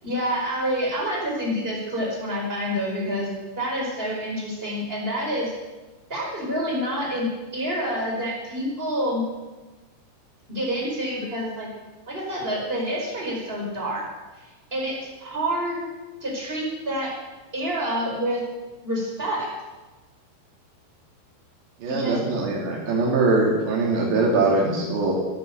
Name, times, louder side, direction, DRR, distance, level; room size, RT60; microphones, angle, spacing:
voice 1, 0.0-5.5 6.1-9.3 10.5-11.7 12.1-14.1 14.7-15.8 16.2-17.1 17.5-18.4 18.8-19.5 21.9-22.2, equal, 15° right, -3 dB, 4.8 m, -27 dB
voice 2, 21.8-25.1, right 3 dB, 90° right, -4 dB, 5.0 m, -22 dB
15.5 x 11.5 x 8.0 m, 1.2 s
omnidirectional pair, 4.9 m